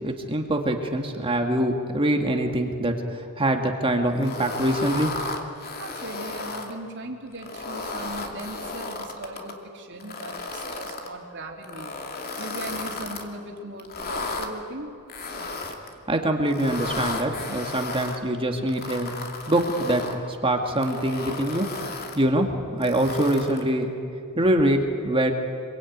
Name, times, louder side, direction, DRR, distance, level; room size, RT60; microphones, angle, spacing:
voice 1, 0.0-5.1 16.1-19.2 19.5-20.1 20.4-21.7 22.2-23.9 24.4-25.3, right 1 dB, 25° right, 3 dB, 1.9 m, -24 dB
sound 1, 4.2-6.7 7.3-9.5 10.0-11.1 11.6-13.3 13.8-14.5 15.1-15.9 16.5-18.2 18.7-20.2 20.7-22.2 22.8-23.7, left 3 dB, 45° left, 2.7 m, -34 dB
voice 2, 5.7-11.9 12.4-15.2, right 1 dB, 55° right, 1 dB, 3.6 m, -38 dB
27.0 x 23.0 x 9.4 m, 2.4 s
head